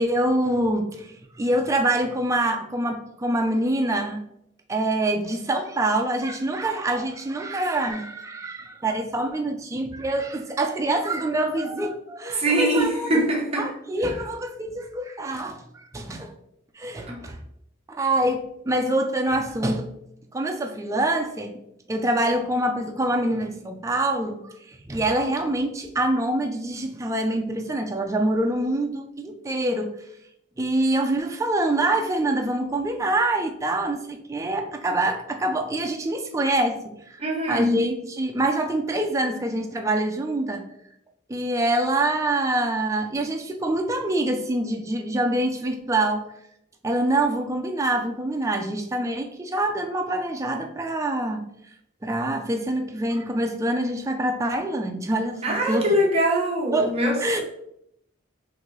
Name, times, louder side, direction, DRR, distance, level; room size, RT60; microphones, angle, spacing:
voice 1, 0.0-4.2 4.7-13.1 13.6-16.4 16.8-17.4 17.9-19.9 20.3-21.6 21.9-30.0 30.6-40.7 41.3-46.3 46.8-51.5 52.0-55.9 56.7-57.4, right 1 dB, 15° right, 4 dB, 0.4 m, -25 dB
voice 2, 12.3-13.7 14.0-14.2 17.0-17.2 37.2-37.9 55.4-57.4, equal, 35° right, -1 dB, 0.8 m, -23 dB
3.8 x 2.6 x 3.1 m, 0.76 s
head